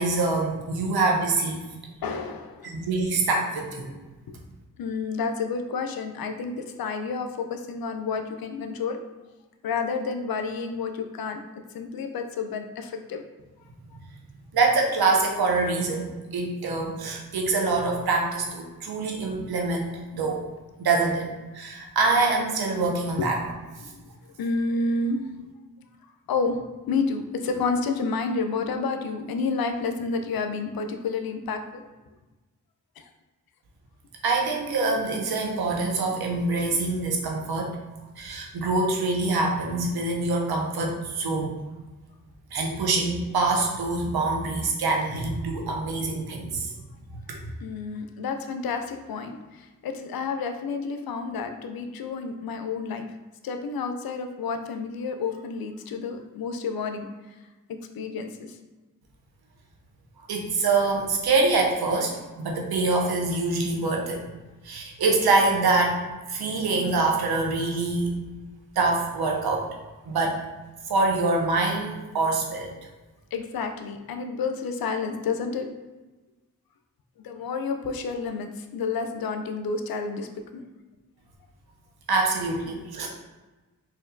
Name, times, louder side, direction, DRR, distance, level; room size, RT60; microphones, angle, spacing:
voice 1, 0.0-1.6 2.6-4.0 14.5-20.4 20.8-23.4 34.2-37.8 38.2-41.5 42.5-46.7 47.3-47.5 60.3-64.2 64.6-66.0 66.3-68.1 68.8-69.8 70.1-70.4 70.9-72.7 82.1-83.1, right 3 dB, 85° right, 1 dB, 0.7 m, -25 dB
voice 2, 2.0-2.7 4.8-9.0 9.6-11.4 11.7-13.2 23.2-23.3 23.9-24.0 24.4-25.3 26.3-31.8 33.0-33.1 47.6-53.1 53.4-57.1 57.7-58.6 73.3-75.7 77.2-80.6, left 4 dB, 75° left, 6 dB, 0.5 m, -30 dB
4.2 x 2.6 x 2.6 m, 1.2 s
cardioid pair, 40°, 36 cm